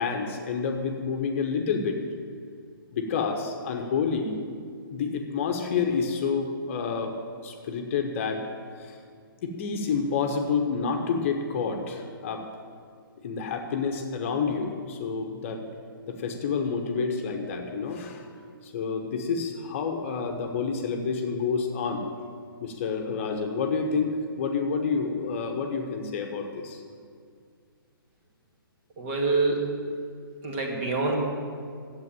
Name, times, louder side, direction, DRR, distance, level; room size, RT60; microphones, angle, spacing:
voice 1, 0.0-2.0 2.9-4.3 4.9-7.2 7.4-8.5 8.8-9.0 9.4-12.5 13.2-15.6 16.1-18.3 18.6-22.1 22.6-26.8, left 5 dB, 35° left, 4 dB, 1.2 m, -29 dB
voice 2, 29.0-29.7 30.4-31.2, right 3 dB, 30° right, 1 dB, 2.4 m, -26 dB
12.0 x 8.1 x 9.0 m, 2.2 s
figure-of-eight pair, 130°, 12 cm